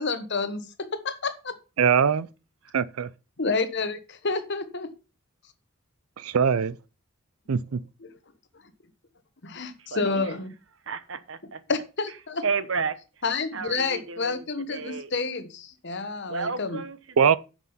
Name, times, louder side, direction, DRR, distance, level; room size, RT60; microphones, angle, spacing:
voice 1, 0.0-1.5 3.4-4.9 8.0-8.1 9.4-10.5 11.7-12.4 13.2-16.8, left 4 dB, 55° left, 1.2 m, -29 dB
voice 2, 1.8-2.3 2.7-3.1 6.2-6.8 7.5-7.8 17.2-17.4, right 7 dB, 80° right, 0.5 m, -21 dB
voice 3, 9.8-10.3 10.9-11.6 12.4-13.0 13.5-15.1 16.3-17.4, right 5 dB, 60° right, 1.0 m, -32 dB
9.2 x 6.2 x 5.6 m
head